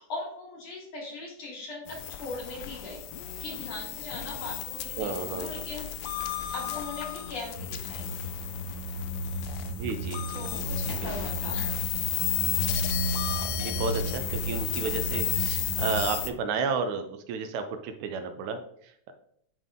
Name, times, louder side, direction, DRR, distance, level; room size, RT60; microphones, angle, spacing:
voice 1, 0.0-3.0 3.4-5.9 6.5-8.1 10.3-11.9, left 2 dB, 60° left, -4 dB, 3.0 m, -39 dB
sound 1, 1.9-16.3, left 12 dB, 85° left, 1.4 m, -34 dB
voice 2, 5.0-5.6 9.7-10.5 10.9-11.1 11.4-11.5 13.3-19.1, right 5 dB, 80° right, 8 dB, 1.9 m, -33 dB
sound 2, 7.5-16.0, right 1 dB, 55° right, 2.6 m, -33 dB
9.5 x 3.6 x 3.6 m, 0.70 s
omnidirectional pair, 3.5 m